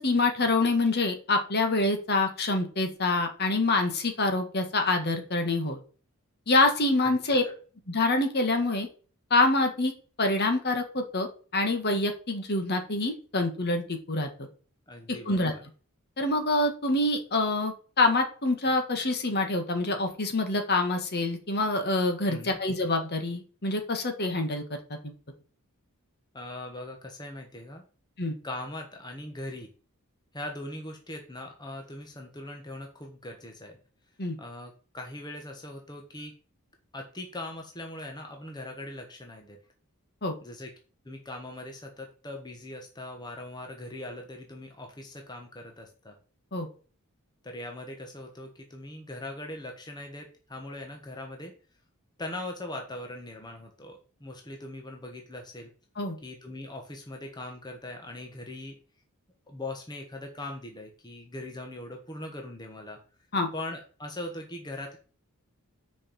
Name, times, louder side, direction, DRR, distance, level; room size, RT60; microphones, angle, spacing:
voice 1, 0.0-5.8 6.5-7.4 7.9-8.9 9.3-9.9 10.2-14.3 15.3-15.5 16.2-24.6 25.0-25.1 28.2-28.3 34.2-34.4 40.2-40.4 46.5-46.7 56.0-56.2 63.3-63.5, left 2 dB, 45° left, 5 dB, 1.8 m, -26 dB
voice 2, 7.0-7.5 14.9-15.6 22.3-22.6 26.3-27.8 28.4-29.7 30.3-33.8 34.4-36.3 36.9-39.6 40.4-40.7 41.0-46.2 47.4-51.5 52.2-55.7 56.2-58.8 59.5-63.0 63.5-65.0, left 1 dB, 20° left, 3 dB, 1.3 m, -40 dB
6.7 x 5.3 x 7.0 m, 0.38 s
head